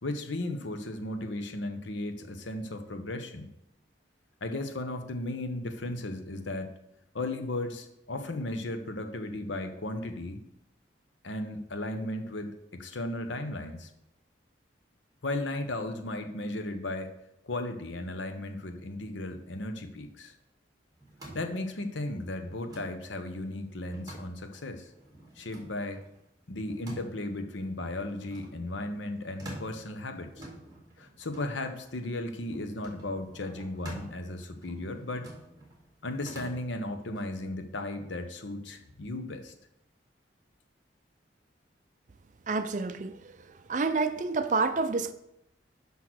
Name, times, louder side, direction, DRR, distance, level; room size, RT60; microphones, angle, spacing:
voice 1, 0.0-3.5 4.4-6.7 7.1-10.4 11.2-13.9 15.2-17.1 17.4-20.3 21.3-24.9 25.4-26.0 26.5-30.5 31.0-35.3 36.0-39.5, left 2 dB, 85° left, 0.9 m, -35 dB
sound 1, 20.9-37.5, right 1 dB, 20° right, 1.9 m, -49 dB
voice 2, 42.5-43.2 43.7-45.1, right 4 dB, 40° right, 0.5 m, -28 dB
6.1 x 5.5 x 6.2 m
head